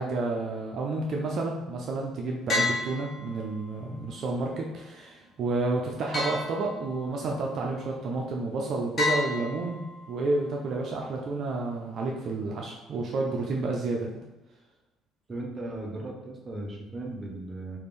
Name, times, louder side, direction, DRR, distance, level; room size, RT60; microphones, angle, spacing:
voice 1, 0.0-9.8 10.1-14.1, right 3 dB, 55° right, -1 dB, 0.4 m, -30 dB
sound 1, 2.5-3.7 6.1-7.2 9.0-10.2, left 2 dB, 45° left, 1.1 m, -31 dB
voice 2, 15.3-17.8, right 2 dB, 25° right, 0 dB, 0.7 m, -37 dB
3.6 x 2.5 x 3.3 m, 1.0 s
cardioid pair, 105°, 0 cm